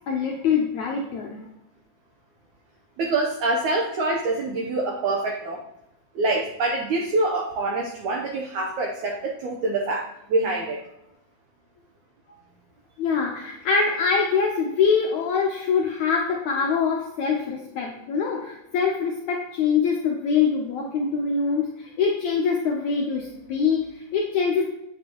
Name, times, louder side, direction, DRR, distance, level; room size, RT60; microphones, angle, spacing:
voice 1, 0.1-1.4 13.0-24.7, left 5 dB, 80° left, 0 dB, 1.7 m, -24 dB
voice 2, 3.0-5.6 6.2-10.8, right 2 dB, 70° right, 1 dB, 1.9 m, -25 dB
8.9 x 8.1 x 3.0 m, 0.84 s
omnidirectional pair, 4.4 m